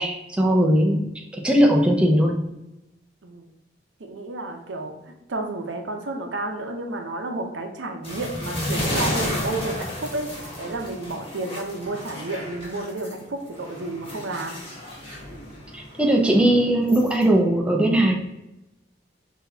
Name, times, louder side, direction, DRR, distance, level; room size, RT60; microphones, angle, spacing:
voice 1, 0.0-2.4 15.7-18.2, right 1 dB, 5° right, 0 dB, 0.5 m, -19 dB
voice 2, 4.0-14.6, right 2 dB, 75° right, 3 dB, 0.7 m, -31 dB
sound 1, 8.0-13.2 13.6-17.2, left 1 dB, 30° left, 1.4 m, -32 dB
5.9 x 2.8 x 2.7 m, 0.94 s
head